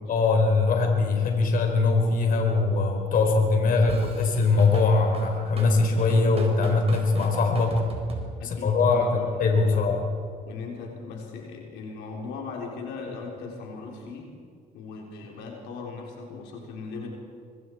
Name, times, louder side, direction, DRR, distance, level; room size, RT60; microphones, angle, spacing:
voice 1, 0.1-7.7 8.4-10.0, left 3 dB, 55° left, 2 dB, 4.2 m, -22 dB
Drum kit / Drum, 3.9-8.7, right 4 dB, 35° right, 4.2 m, -38 dB
voice 2, 8.4-9.9 10.4-14.3 14.7-17.1, left 4 dB, 90° left, 0 dB, 4.0 m, -38 dB
25.0 x 24.0 x 4.8 m, 2.3 s
cardioid pair, 110°, 17 cm